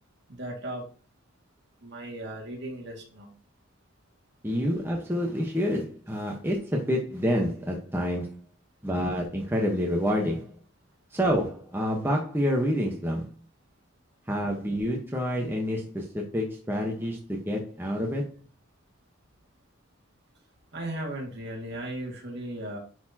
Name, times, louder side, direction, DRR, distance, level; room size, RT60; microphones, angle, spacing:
voice 1, 0.3-0.9 1.8-3.3 20.7-22.8, right 1 dB, 55° right, 2.3 m, -36 dB
voice 2, 4.4-8.4 8.8-10.5 11.1-13.3 14.3-18.3, equal, 10° right, 1.2 m, -28 dB
10.5 x 4.3 x 2.9 m
head